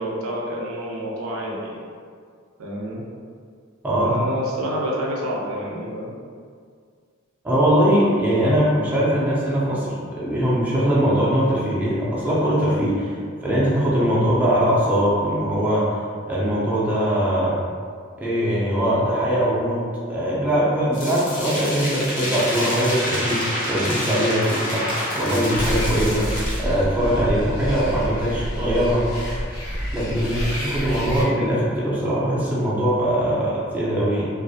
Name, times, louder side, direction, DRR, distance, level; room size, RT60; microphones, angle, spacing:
voice 1, 0.0-1.8 2.6-3.0 4.0-6.1 30.2-30.5, equal, 75° right, -3 dB, 0.5 m, -28 dB
voice 2, 3.8-4.1 7.4-13.1 13.4-15.9 16.3-17.6 18.2-19.8 20.1-24.9 25.1-26.3 26.6-29.1 29.9-34.3, equal, 10° right, -8 dB, 0.4 m, -21 dB
sound 1, 20.9-26.6, equal, 40° left, 0.6 m, -27 dB
sound 2, 25.5-31.2, equal, 70° left, 0.8 m, -28 dB
2.3 x 2.0 x 2.6 m, 2.1 s
head